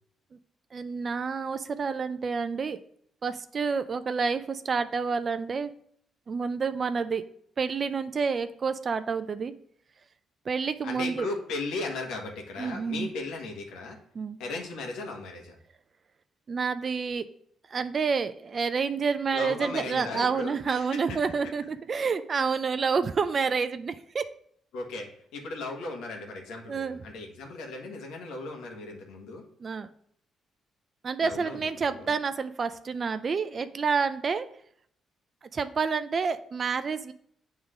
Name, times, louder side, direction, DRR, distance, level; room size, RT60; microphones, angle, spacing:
voice 1, 0.7-2.8 3.2-5.7 6.3-7.2 7.6-9.5 10.5-11.3 12.6-13.1 14.1-14.4 16.5-17.3 17.7-24.3 26.7-27.0 29.6-29.9 31.0-34.5 35.5-37.1, right 5 dB, 40° right, 11 dB, 0.4 m, -29 dB
voice 2, 10.8-14.0 14.4-15.5 19.3-21.2 24.7-29.4 31.2-32.1, left 3 dB, 90° left, 1 dB, 1.5 m, -37 dB
7.9 x 3.7 x 4.9 m, 0.67 s
cardioid pair, 90°, 0 cm